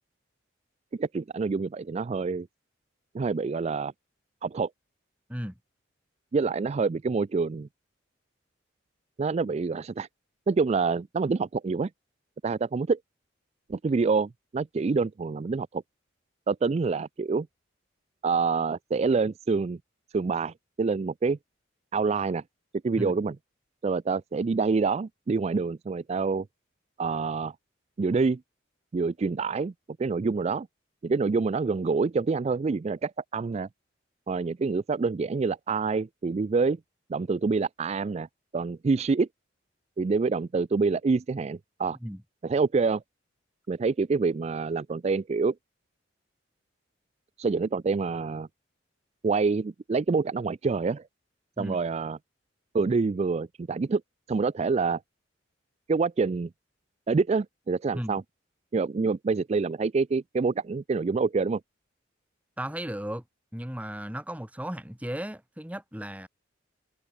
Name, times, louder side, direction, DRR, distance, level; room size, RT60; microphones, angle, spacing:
voice 1, 0.9-2.5 3.1-3.9 4.4-4.7 6.3-7.7 9.2-10.1 10.5-11.9 12.4-13.0 13.7-15.8 16.5-17.5 18.2-19.8 20.1-21.4 21.9-22.4 22.8-23.4 23.8-26.5 27.0-27.5 28.0-28.4 28.9-29.7 30.0-30.7 31.0-33.7 34.3-36.8 37.1-38.3 38.5-39.3 40.0-42.0 42.4-43.0 43.7-45.5 47.4-48.5 49.2-51.0 51.6-52.2 52.7-54.0 54.3-55.0 55.9-56.5 57.1-58.2 58.7-61.6, right 4 dB, 35° right, 0.3 m, -26 dB
voice 2, 62.6-63.2 63.5-66.3, equal, 5° right, 2.1 m, -35 dB
head